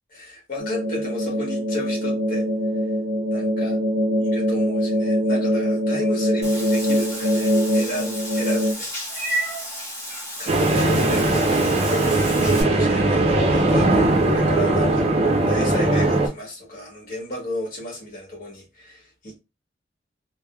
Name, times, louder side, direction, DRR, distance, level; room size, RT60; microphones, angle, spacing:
voice 1, 0.1-2.5 3.3-3.8 4.2-8.9 10.4-12.1 12.4-19.4, left 1 dB, 50° left, 1.1 m, -33 dB
sound 1, 0.6-8.7, equal, 90° right, 0.5 m, -23 dB
Meow / Water / Bathtub (filling or washing), 6.4-12.6, equal, 15° left, 1.3 m, -32 dB
sound 2, 10.5-16.3, right 2 dB, 35° right, 0.5 m, -19 dB
3.4 x 2.0 x 2.2 m
head